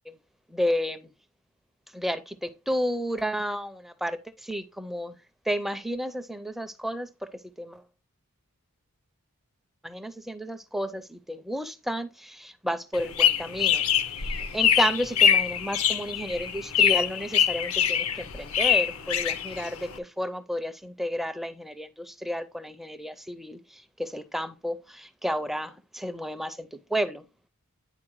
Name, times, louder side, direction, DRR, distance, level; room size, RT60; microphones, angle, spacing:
voice 1, 0.5-1.1 1.9-5.2 5.5-7.8 9.8-13.9 14.1-27.3, equal, ahead, 0.4 m, -32 dB
sound 1, 12.9-20.0, left 8 dB, 70° left, 0.7 m, -24 dB
9.7 x 4.2 x 3.0 m
head